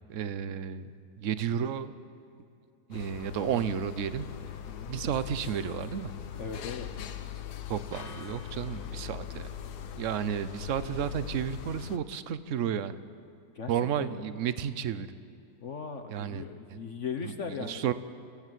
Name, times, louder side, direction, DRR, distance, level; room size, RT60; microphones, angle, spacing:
voice 1, 0.1-1.9 2.9-4.3 4.9-6.1 7.7-9.5 10.0-13.0 13.7-15.1 16.1-16.4 16.7-16.8 17.6-17.9, right 9 dB, 55° right, 13 dB, 1.1 m, -32 dB
sound 1, 2.9-12.0, left 9 dB, 80° left, 1.5 m, -41 dB
voice 2, 6.4-6.9 13.5-14.2 15.6-17.9, left 6 dB, 50° left, 6 dB, 1.2 m, -38 dB
sound 2, 7.9-16.1, left 2 dB, 20° right, 5.9 m, -59 dB
28.5 x 16.0 x 7.6 m, 2.5 s
omnidirectional pair, 1.7 m